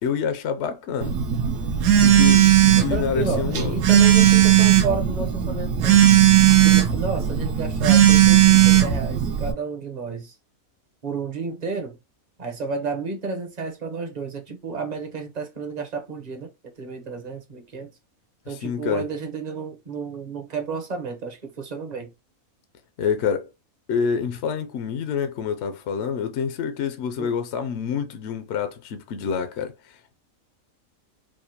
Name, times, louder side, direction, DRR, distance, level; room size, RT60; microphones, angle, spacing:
voice 1, 0.0-1.2 2.0-2.5 2.8-3.8 7.1-7.4 18.5-19.1 23.0-23.5 23.9-30.1, left 7 dB, 65° left, 0.7 m, -27 dB
Telephone, 1.0-9.5, right 11 dB, 85° right, 1.2 m, -17 dB
voice 2, 2.8-6.0 6.6-10.4 11.0-12.0 12.4-16.5 16.8-17.9 18.5-22.1 27.2-27.3, right 4 dB, 35° right, 0.8 m, -31 dB
4.8 x 2.3 x 2.8 m
omnidirectional pair, 1.5 m